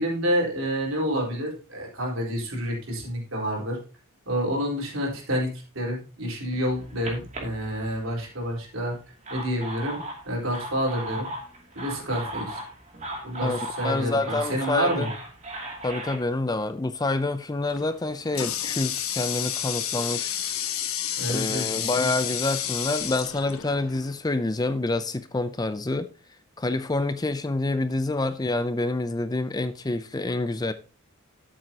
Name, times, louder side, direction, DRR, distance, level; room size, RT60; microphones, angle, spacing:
voice 1, 0.0-3.8 4.3-9.0 9.3-10.0 10.3-11.3 11.7-12.6 13.2-15.1 21.2-22.1, equal, 65° right, 4.3 m, -28 dB
sound 1, 6.7-8.3 9.0-16.2, right 1 dB, 30° right, 2.6 m, -37 dB
voice 2, 13.4-15.1 15.8-20.4 21.3-26.1 26.6-30.7, left 2 dB, 15° left, 0.4 m, -27 dB
Water tap faucet, 17.7-24.2, left 10 dB, 70° left, 1.3 m, -31 dB
13.0 x 7.6 x 2.9 m
head